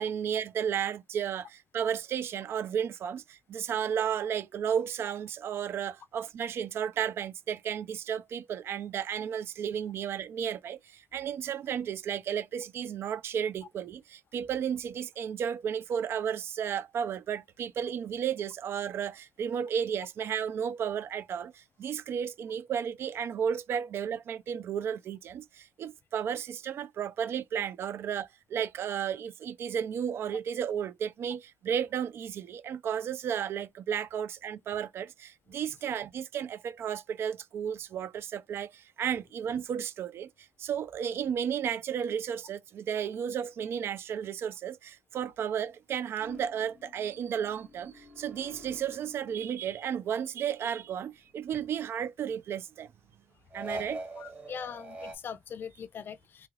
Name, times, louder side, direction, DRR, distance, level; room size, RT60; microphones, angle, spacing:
voice 1, 0.0-52.9 53.5-54.0, right 8 dB, 60° right, 0.4 m, -33 dB
sound 1, 46.2-50.1 50.4-52.0 53.5-55.2, right 1 dB, 30° right, 1.4 m, -45 dB
voice 2, 54.2-56.5, left 7 dB, 50° left, 0.4 m, -41 dB
2.9 x 2.3 x 3.1 m
cardioid pair, 85°, 5 cm